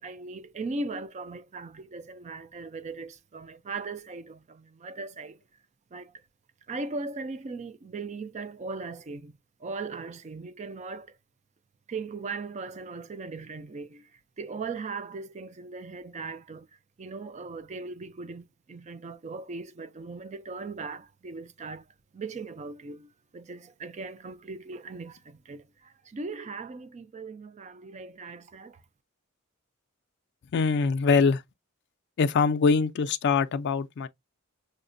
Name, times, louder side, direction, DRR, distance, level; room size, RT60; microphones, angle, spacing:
voice 1, 0.0-5.4 5.9-6.2 6.7-11.2 11.9-16.7 17.0-21.9 22.1-28.8, right 3 dB, 35° right, 0.4 m, -39 dB
voice 2, 30.5-31.4 32.2-34.1, left 5 dB, 55° left, 0.4 m, -23 dB
5.7 x 2.1 x 2.5 m
head